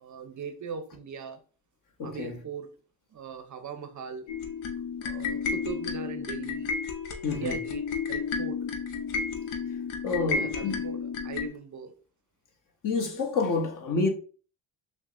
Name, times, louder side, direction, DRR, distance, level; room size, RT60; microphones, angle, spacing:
voice 1, 0.0-1.4 2.0-2.7 3.1-4.3 5.0-6.8 7.2-8.7 10.1-11.0 11.2-12.0, right 6 dB, 40° right, 0.6 m, -40 dB
voice 2, 2.0-2.4 7.2-7.6 10.0-10.8 12.8-14.1, left 4 dB, 45° left, 1.0 m, -28 dB
sound 1, 4.3-11.5, left 5 dB, 85° left, 0.8 m, -32 dB
5.9 x 2.1 x 2.5 m
supercardioid pair, 70°, 45 cm